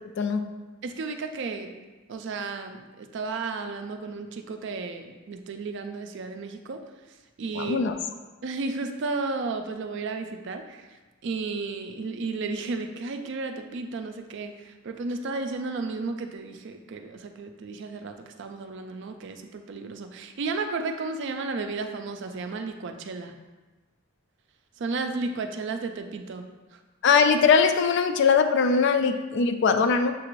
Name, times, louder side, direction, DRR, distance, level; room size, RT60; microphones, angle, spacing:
voice 1, 0.8-1.8 2.1-6.8 7.4-7.8 8.4-10.9 11.2-23.3 24.8-26.4 26.7-26.8, right 3 dB, 55° right, 6 dB, 0.4 m, -33 dB
voice 2, 7.5-7.9 27.0-30.1, left 5 dB, 55° left, 8 dB, 0.3 m, -21 dB
6.7 x 2.4 x 3.1 m, 1.2 s
head